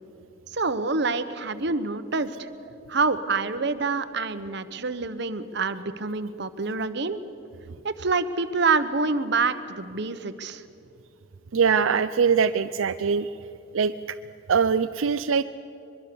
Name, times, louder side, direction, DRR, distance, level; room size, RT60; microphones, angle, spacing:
voice 1, 0.5-2.5 2.9-7.2 7.8-10.6, right 4 dB, 60° right, 11 dB, 1.1 m, -26 dB
voice 2, 11.5-13.3 13.7-13.9 14.5-15.4, right 6 dB, 85° right, 9 dB, 0.5 m, -22 dB
22.5 x 22.5 x 6.9 m, 2.6 s
head